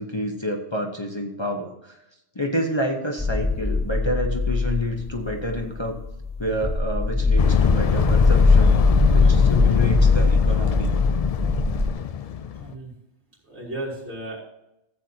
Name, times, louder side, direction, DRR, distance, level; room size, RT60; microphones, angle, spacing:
voice 1, 0.0-2.0 2.3-6.0 6.4-8.8 9.1-10.9, left 1 dB, 25° left, 1 dB, 0.9 m, -28 dB
sound 1, 3.2-11.9, left 3 dB, 5° left, 0.6 m, -20 dB
sound 2, 7.4-12.7, left 8 dB, 65° left, 0.3 m, -24 dB
voice 2, 12.5-12.9 13.4-14.4, right 1 dB, 70° right, -5 dB, 3.5 m, -34 dB
14.5 x 8.1 x 2.8 m, 0.88 s
omnidirectional pair, 1.2 m